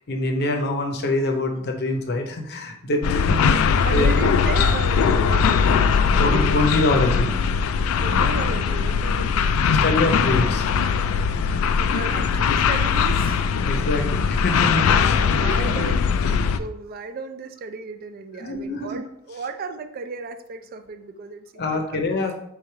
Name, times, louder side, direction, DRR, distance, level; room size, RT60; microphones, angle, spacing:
voice 1, 0.1-4.2 6.2-7.4 9.8-10.6 13.7-14.0 14.3-15.7 18.4-19.0 21.6-22.5, left 2 dB, 50° left, 4 dB, 0.7 m, -25 dB
sound 1, 3.0-16.6, left 6 dB, 80° left, 0.3 m, -20 dB
voice 2, 3.7-6.6 8.0-9.7 11.8-14.1 15.2-21.9, right 4 dB, 45° right, 8 dB, 0.3 m, -35 dB
3.5 x 3.2 x 4.7 m, 0.77 s
head